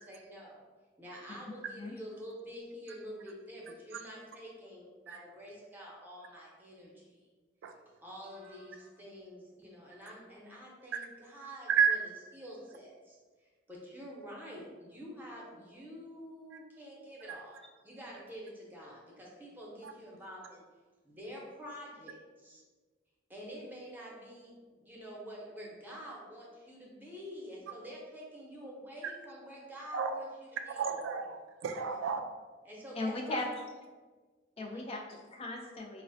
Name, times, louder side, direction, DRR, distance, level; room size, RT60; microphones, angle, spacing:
voice 1, 0.1-0.6 1.0-7.1 8.0-12.0 12.3-20.6 21.0-22.6 23.3-30.3 30.6-31.0 32.6-33.4 34.6-34.8, equal, 10° right, -4 dB, 0.7 m, -48 dB
voice 2, 1.5-2.0 33.0-33.5 34.6-36.0, left 2 dB, 30° left, 1 dB, 0.4 m, -38 dB
voice 3, 30.8-32.2, right 6 dB, 90° right, 6 dB, 0.3 m, -30 dB
4.7 x 2.1 x 2.6 m, 1.3 s
head